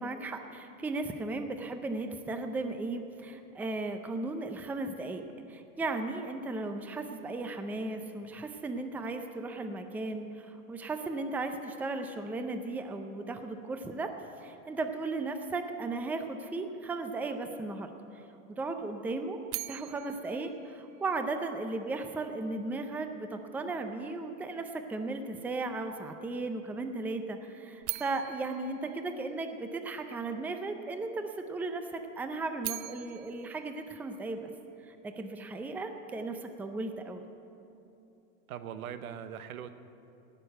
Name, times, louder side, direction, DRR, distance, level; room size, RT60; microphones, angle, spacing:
voice 1, 0.0-5.2 5.5-14.1 14.4-18.2 18.6-34.5 34.9-37.2, right 3 dB, 5° right, 6 dB, 0.5 m, -36 dB
sound 1, 19.5-21.6 27.8-30.0 32.3-34.8, right 18 dB, 60° right, 0.6 m, -43 dB
voice 2, 38.5-39.7, right 9 dB, 85° right, 11 dB, 1.0 m, -40 dB
18.0 x 6.7 x 7.9 m, 2.7 s
supercardioid pair, 130°, 41 cm